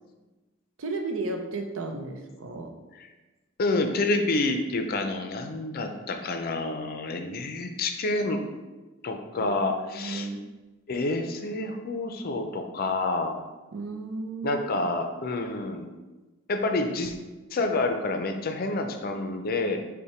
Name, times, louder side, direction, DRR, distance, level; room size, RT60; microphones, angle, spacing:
voice 1, 0.8-2.7 9.4-9.6 9.8-10.4 13.7-14.9, right 3 dB, 80° right, 4 dB, 0.6 m, -34 dB
voice 2, 3.6-8.4 9.0-10.3 10.9-13.4 14.4-15.9 16.5-17.1 17.5-19.8, left 2 dB, 50° left, 6 dB, 0.5 m, -28 dB
5.6 x 2.2 x 4.3 m, 1.2 s
head